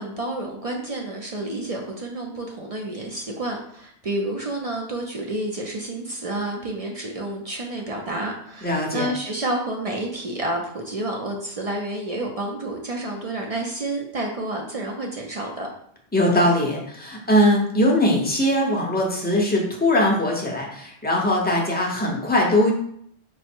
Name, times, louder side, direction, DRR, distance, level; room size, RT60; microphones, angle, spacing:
voice 1, 0.0-15.7, right 1 dB, 45° right, 0 dB, 0.5 m, -30 dB
voice 2, 8.6-9.1 16.1-22.7, left 1 dB, 10° left, -2 dB, 0.6 m, -21 dB
4.7 x 2.0 x 4.3 m, 0.66 s
omnidirectional pair, 1.1 m